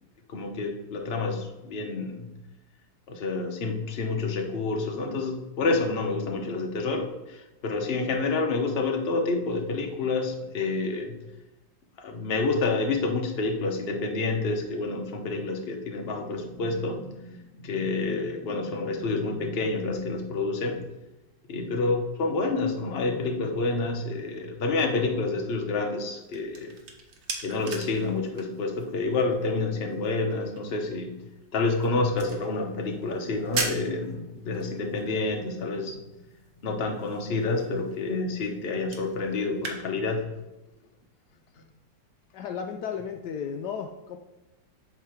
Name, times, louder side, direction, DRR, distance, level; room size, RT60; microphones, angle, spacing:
voice 1, 0.3-2.3 3.1-11.2 12.0-20.8 21.5-26.7 27.4-31.1 31.5-36.0 36.6-40.3, left 3 dB, 40° left, 2 dB, 1.0 m, -28 dB
sound 1, 26.0-39.8, right 4 dB, 60° right, 1.4 m, -41 dB
voice 2, 42.3-44.2, left 7 dB, 75° left, 4 dB, 1.1 m, -34 dB
8.1 x 3.7 x 5.8 m, 0.98 s
omnidirectional pair, 2.0 m